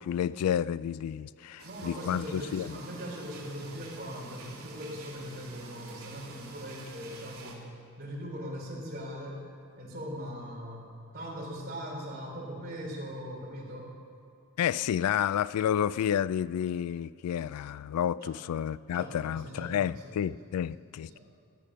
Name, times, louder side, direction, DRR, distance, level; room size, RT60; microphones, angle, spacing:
voice 1, 0.0-2.7 14.6-21.2, left 9 dB, 85° left, 0.3 m, -30 dB
voice 2, 1.6-7.7 8.0-9.4 9.8-14.0 18.2-18.4 18.9-20.2 21.0-21.2, equal, 45° right, 3.2 m, -40 dB
sound 1, 1.6-7.5, right 3 dB, 70° right, 2.9 m, -48 dB
15.0 x 9.1 x 6.2 m
head